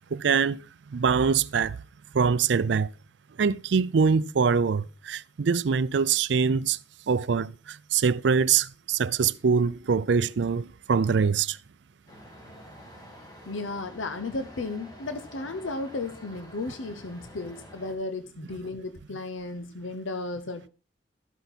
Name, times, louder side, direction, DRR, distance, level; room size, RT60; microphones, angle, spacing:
voice 1, 0.1-0.6 0.9-1.8 2.1-2.9 3.4-6.8 7.1-11.6, right 6 dB, 65° right, 0.4 m, -24 dB
sound 1, 12.1-17.9, equal, 20° left, 2.0 m, -48 dB
voice 2, 13.5-20.7, left 3 dB, 85° left, 0.8 m, -34 dB
13.0 x 8.0 x 4.1 m
head